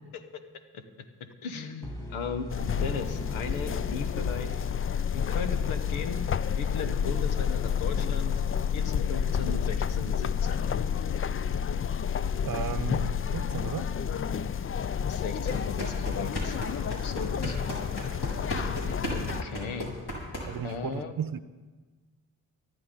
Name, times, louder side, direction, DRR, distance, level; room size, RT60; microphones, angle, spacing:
voice 1, 1.2-4.5 5.1-8.3 8.7-10.7 15.1-16.6 16.8-17.6 19.1-20.0 20.6-21.1, left 5 dB, 75° left, 8 dB, 1.3 m, -37 dB
sound 1, 1.8-5.7, equal, 5° left, 2.6 m, -41 dB
sound 2, 2.5-19.4, left 7 dB, 30° left, 0.5 m, -30 dB
voice 2, 12.4-13.9 20.4-21.4, right 8 dB, 45° right, 13 dB, 0.9 m, -34 dB
sound 3, 15.5-20.8, equal, 55° left, 5.1 m, -35 dB
24.0 x 9.7 x 4.0 m, 1.3 s
hypercardioid pair, 40°, 48 cm